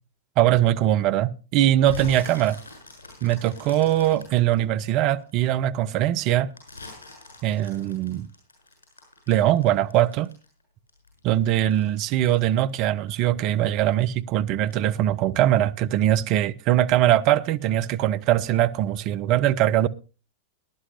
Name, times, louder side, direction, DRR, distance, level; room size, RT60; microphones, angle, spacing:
voice 1, 0.4-2.6 3.2-6.5 7.4-8.3 9.3-10.3 11.2-19.9, right 12 dB, 40° right, 0.7 m, -21 dB
sound 1, 1.8-5.4 5.8-10.6 10.9-13.6 13.9-14.3 14.7-14.8, left 3 dB, 70° left, 7.5 m, -41 dB
21.0 x 11.0 x 2.6 m
figure-of-eight pair, 90°, 0 cm